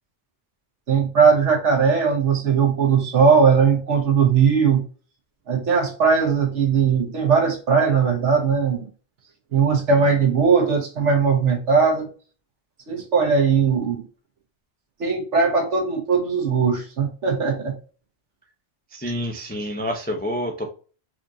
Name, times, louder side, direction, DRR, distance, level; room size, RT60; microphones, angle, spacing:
voice 1, 0.9-4.8 5.5-8.9 9.5-12.1 12.9-14.0 15.0-17.7, right 5 dB, 85° right, 2 dB, 1.4 m, -19 dB
voice 2, 18.9-20.7, equal, 15° left, 3 dB, 0.3 m, -28 dB
4.3 x 2.6 x 2.7 m, 0.37 s
omnidirectional pair, 1.2 m